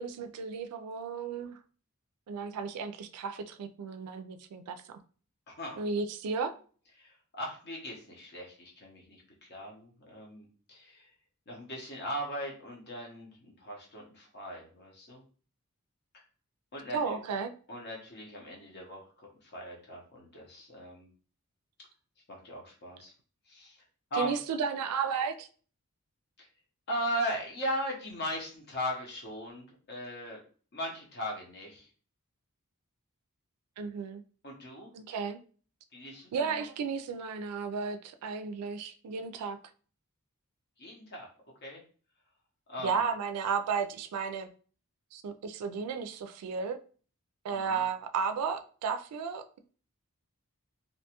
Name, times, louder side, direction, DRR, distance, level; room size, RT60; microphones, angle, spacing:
voice 1, 0.0-1.6 2.3-5.0 5.8-6.5 16.9-17.5 24.2-25.5 33.8-34.2 34.9-35.4 36.3-39.6 42.8-44.5 45.1-46.8 47.4-49.6, right 5 dB, 85° right, 0.3 m, -34 dB
voice 2, 5.5-5.8 7.0-11.1 11.5-15.2 16.1-16.2 16.7-17.2 17.7-21.1 22.3-23.1 23.5-23.8 24.1-24.4 26.4-26.5 26.9-30.4 30.7-31.9 34.4-34.9 35.9-36.6 40.8-41.3 41.6-41.8 42.7-43.0 47.5-47.8, equal, 45° left, 0.8 m, -38 dB
2.6 x 2.2 x 2.8 m
head